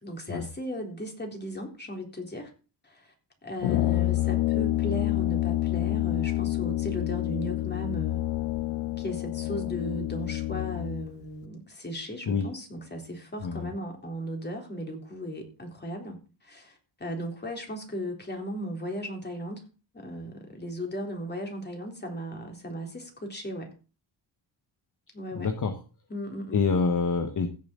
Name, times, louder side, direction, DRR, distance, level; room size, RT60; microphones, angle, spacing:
voice 1, 0.0-2.5 2.8-3.1 3.4-8.2 9.0-19.6 19.9-23.7 25.1-25.5 26.1-26.6, equal, 20° left, 2 dB, 3.8 m, -36 dB
Brass instrument, 3.6-11.1, left 17 dB, 70° left, 0.5 m, -28 dB
voice 2, 13.4-13.7 25.3-25.8 26.5-27.5, left 5 dB, 40° left, 7 dB, 1.3 m, -26 dB
16.0 x 7.3 x 3.9 m, 0.34 s
cardioid pair, 110°, 48 cm